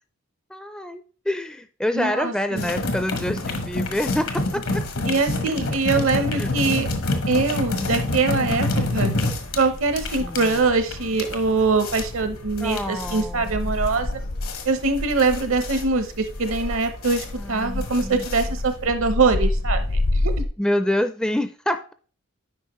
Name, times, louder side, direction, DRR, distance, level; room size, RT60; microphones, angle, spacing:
voice 1, 0.5-4.8 6.4-6.5 10.2-10.5 12.6-13.5 17.4-18.2 20.6-21.9, left 1 dB, 5° left, 9 dB, 0.4 m, -27 dB
voice 2, 1.9-2.7 5.1-6.9 7.3-8.7 8.9-9.1 9.6-14.2 14.6-20.5, right 3 dB, 70° right, 9 dB, 0.9 m, -23 dB
sound 1, 2.6-18.9, left 2 dB, 80° left, 1.3 m, -28 dB
sound 2, 6.0-20.5, left 2 dB, 55° left, 0.6 m, -31 dB
9.1 x 5.1 x 3.1 m, 0.39 s
head